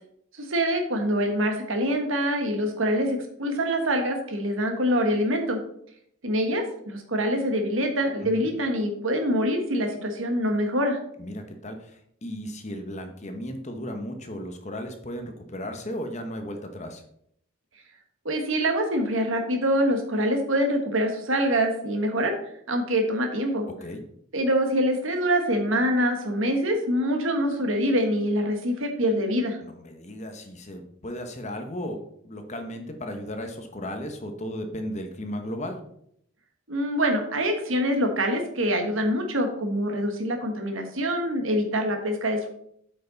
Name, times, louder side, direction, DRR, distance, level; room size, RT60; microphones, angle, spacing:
voice 1, 0.3-5.6 6.2-11.0 18.2-22.3 22.7-23.7 24.3-29.6 36.7-42.5, equal, 70° right, 4 dB, 1.4 m, -25 dB
voice 2, 11.2-17.0 23.8-24.0 29.6-35.8, equal, 35° left, 6 dB, 1.0 m, -35 dB
8.6 x 5.6 x 4.0 m, 0.71 s
head